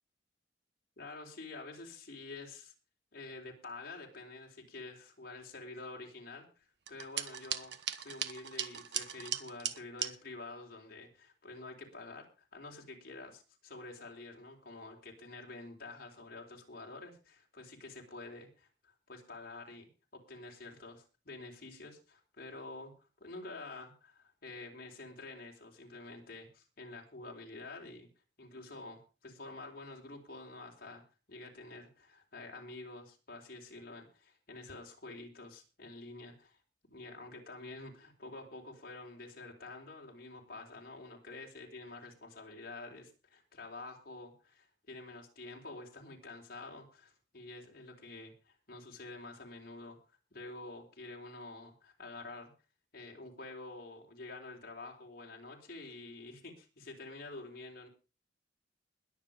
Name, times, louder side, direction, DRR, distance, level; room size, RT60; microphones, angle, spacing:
voice 1, 1.0-2.7 3.1-7.7 8.0-22.9 23.2-28.1 28.4-31.0 31.3-36.6 36.9-50.0 50.3-52.5 52.9-57.9, left 2 dB, 55° left, 0 dB, 3.8 m, -48 dB
sound 1, 6.9-10.1, right 9 dB, 65° right, 1.2 m, -38 dB
21.0 x 7.3 x 5.1 m, 0.33 s
head